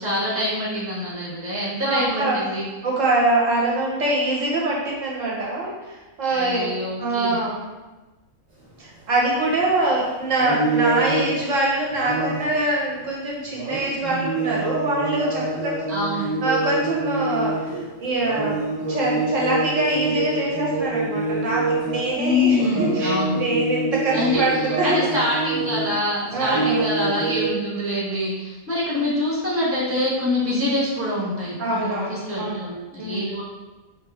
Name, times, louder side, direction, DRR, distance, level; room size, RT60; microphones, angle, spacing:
voice 1, 0.0-2.6 6.3-7.4 15.9-16.3 22.1-23.4 24.1-33.4, left 1 dB, 10° right, -6 dB, 1.2 m, -25 dB
voice 2, 1.8-2.4 2.8-6.7 7.0-7.6 8.8-15.9 16.4-25.1 26.3-26.9 31.6-32.1 32.4-32.7 33.0-33.3, right 2 dB, 65° right, -4 dB, 1.2 m, -24 dB
sound 1, 8.9-9.0 9.3-9.8 10.4-11.5 11.9-12.6 13.5-17.8 18.2-22.2 22.4-25.9 26.3-27.5, right 2 dB, 30° right, 1.2 m, -26 dB
4.9 x 3.2 x 3.4 m, 1.2 s
omnidirectional pair, 1.5 m